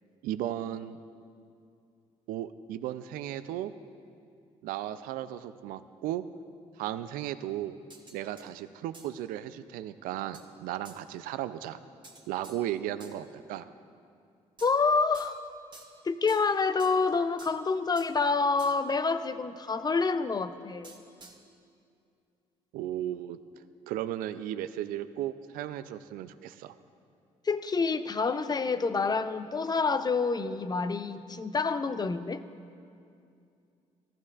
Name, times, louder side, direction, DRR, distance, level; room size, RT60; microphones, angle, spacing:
voice 1, 0.2-1.0 2.3-3.7 4.6-6.2 6.8-7.8 8.1-11.8 12.3-13.7 22.7-23.4 23.9-26.7, right 12 dB, 80° right, 13 dB, 0.4 m, -35 dB
sound 1, 7.9-8.5 8.9-9.2 10.3-10.5 10.9-11.0 12.0-13.2 14.6-15.5 15.7-17.1 17.4-18.2 18.6-19.0 20.8-21.5, right 2 dB, 30° right, 1.4 m, -52 dB
voice 2, 14.6-15.4 16.0-20.9 27.5-32.4, left 4 dB, 30° left, 12 dB, 0.5 m, -27 dB
14.5 x 13.0 x 2.4 m, 2.5 s
supercardioid pair, 60°, 14 cm